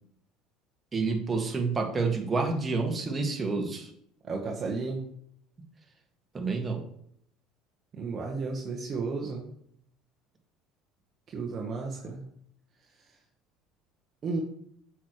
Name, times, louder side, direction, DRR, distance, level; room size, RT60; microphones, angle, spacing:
voice 1, 0.9-3.9 6.3-6.8, right 4 dB, 25° right, 2 dB, 1.7 m, -29 dB
voice 2, 4.2-5.0 7.9-9.5 11.3-12.2 14.2-14.4, right 4 dB, 40° right, 0 dB, 1.3 m, -33 dB
8.0 x 6.2 x 3.2 m, 0.68 s
hypercardioid pair, 75°, 0 cm